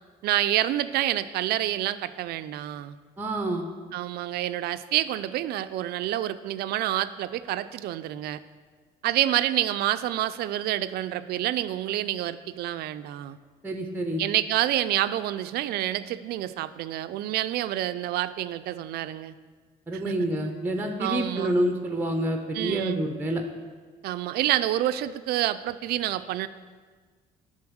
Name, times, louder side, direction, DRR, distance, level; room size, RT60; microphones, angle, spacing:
voice 1, 0.2-2.9 3.9-8.4 9.0-13.4 14.2-19.3 20.1-20.2 21.0-21.5 22.5-23.0 24.0-26.5, right 13 dB, 70° right, 13 dB, 0.4 m, -28 dB
voice 2, 3.2-3.7 13.6-14.2 19.9-23.4, right 1 dB, 10° right, 4 dB, 0.7 m, -28 dB
9.6 x 3.9 x 6.2 m, 1.5 s
cardioid pair, 110°, 17 cm